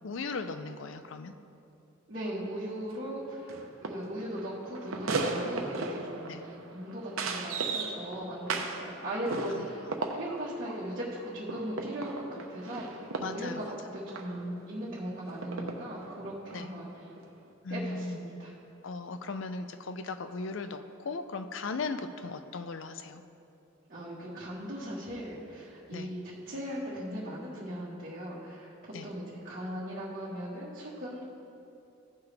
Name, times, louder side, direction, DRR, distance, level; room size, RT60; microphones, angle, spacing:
voice 1, 0.0-1.3 6.3-6.4 9.5-9.7 13.2-13.7 16.5-16.7 17.6-18.2 18.8-23.2 25.9-26.1 28.9-29.1, left 3 dB, 65° left, 9 dB, 0.5 m, -37 dB
voice 2, 2.1-9.9 10.1-17.0 17.7-18.5 23.9-31.3, equal, 45° right, -9 dB, 1.5 m, -38 dB
sound 1, 2.6-2.7 2.9-3.1 3.5-8.9 9.3-14.4 15.4-16.7 17.1-17.2, right 3 dB, 85° right, 0.8 m, -37 dB
15.5 x 5.8 x 3.4 m, 2.7 s
head